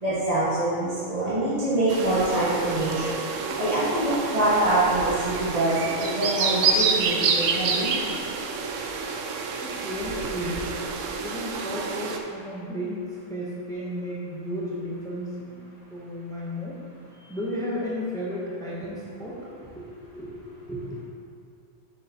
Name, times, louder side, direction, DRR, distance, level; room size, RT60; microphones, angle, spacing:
voice 1, 0.0-7.9, right 1 dB, 30° right, -11 dB, 1.5 m, -25 dB
sound 1, 1.9-12.2, right 5 dB, 75° right, 1.0 m, -28 dB
voice 2, 9.6-10.8 11.2-15.6 15.9-16.8 17.2-19.8 20.1-21.0, equal, 5° left, -5 dB, 0.8 m, -33 dB
6.9 x 6.6 x 2.9 m, 2.3 s
omnidirectional pair, 1.4 m